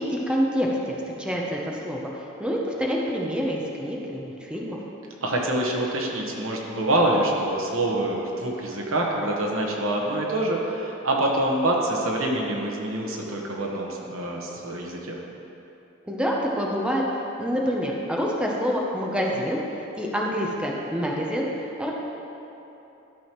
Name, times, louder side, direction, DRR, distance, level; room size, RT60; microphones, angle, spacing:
voice 1, 0.0-2.1 2.4-4.8 16.1-17.0 17.4-19.6 20.0-21.5 21.8-21.9, equal, 5° right, -2 dB, 0.7 m, -27 dB
voice 2, 5.2-15.2, right 1 dB, 85° right, -1 dB, 1.2 m, -26 dB
12.0 x 6.2 x 3.0 m, 3.0 s
head